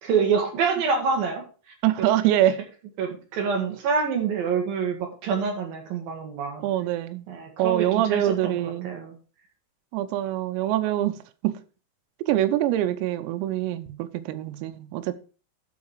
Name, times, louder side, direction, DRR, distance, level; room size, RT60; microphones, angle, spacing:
voice 1, 0.0-1.4 2.0-2.1 3.0-6.7 7.3-9.2, right 5 dB, 60° right, 2.6 m, -26 dB
voice 2, 1.8-2.6 6.6-7.3 7.6-8.9 9.9-11.2 11.4-11.6 12.2-15.2, right 13 dB, 90° right, 3.5 m, -24 dB
12.5 x 4.8 x 4.7 m
omnidirectional pair, 6.0 m